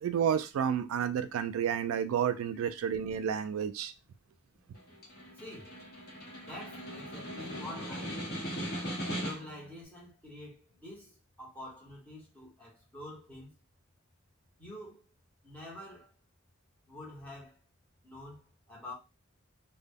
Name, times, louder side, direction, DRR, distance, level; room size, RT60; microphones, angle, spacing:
voice 1, 0.0-3.9, right 8 dB, 80° right, 0.3 m, -30 dB
Snare drum, 4.7-9.7, equal, 45° left, 0.9 m, -39 dB
voice 2, 5.3-5.9 6.4-8.4 9.2-13.5 14.6-15.1 15.4-16.1 16.9-17.6 18.0-18.9, left 1 dB, 5° left, 0.9 m, -47 dB
2.1 x 2.0 x 3.4 m
head